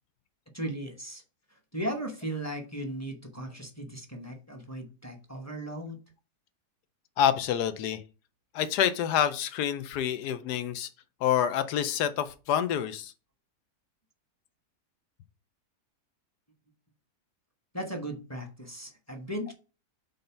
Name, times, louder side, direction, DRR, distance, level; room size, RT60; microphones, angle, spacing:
voice 1, 0.5-1.2 1.5-6.0 17.7-19.5, right 1 dB, 10° left, 3 dB, 1.0 m, -37 dB
voice 2, 7.2-8.0 8.5-10.9 11.2-13.1, left 9 dB, 85° left, 12 dB, 1.3 m, -27 dB
5.2 x 3.9 x 5.7 m, 0.33 s
omnidirectional pair, 1.7 m